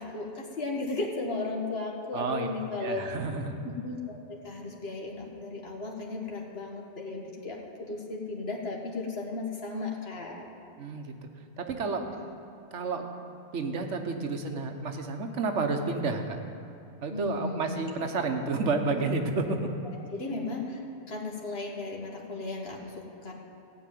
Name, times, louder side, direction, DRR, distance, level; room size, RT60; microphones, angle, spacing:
voice 1, 0.0-3.0 3.6-10.5 17.1-17.9 20.1-23.3, left 3 dB, 60° left, -1 dB, 1.6 m, -35 dB
voice 2, 2.1-2.5 2.8-3.6 10.8-11.1 11.6-12.0 12.7-13.0 13.5-16.4 17.0-19.6, right 3 dB, 85° right, 5 dB, 1.4 m, -30 dB
15.5 x 5.4 x 9.2 m, 2.5 s
omnidirectional pair, 1.2 m